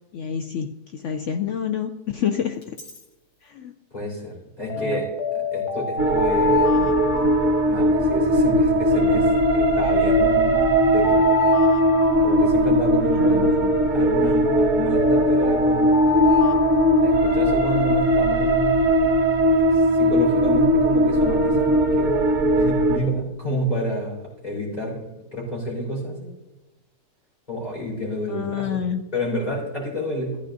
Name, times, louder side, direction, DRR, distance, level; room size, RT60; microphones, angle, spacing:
voice 1, 0.1-2.8 3.4-3.7 4.8-5.0 13.2-13.7 28.3-29.0, left 8 dB, 70° left, 6 dB, 0.7 m, -28 dB
Alarm, 2.6-3.0 4.7-8.5 9.6-13.3 14.4-17.7, left 6 dB, 50° left, 1.6 m, -28 dB
voice 2, 3.9-7.1 7.7-11.2 12.2-16.1 17.0-19.3 19.7-22.2 22.5-25.0 25.3-26.3 27.5-28.8 29.1-30.4, equal, 25° left, -5 dB, 4.1 m, -29 dB
sound 1, 6.0-23.0, right 1 dB, 80° right, 2.0 m, -19 dB
15.0 x 9.8 x 2.6 m, 1.1 s
omnidirectional pair, 1.7 m